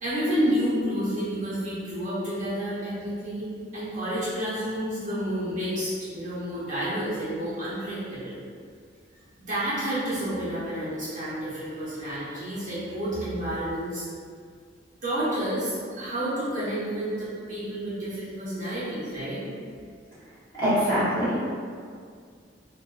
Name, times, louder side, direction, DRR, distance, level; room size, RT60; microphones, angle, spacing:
voice 1, 0.0-8.3 9.5-14.1 15.0-19.4, equal, 45° right, -11 dB, 0.8 m, -30 dB
voice 2, 20.5-21.4, equal, 25° left, -14 dB, 1.1 m, -23 dB
2.4 x 2.2 x 2.4 m, 2.1 s
head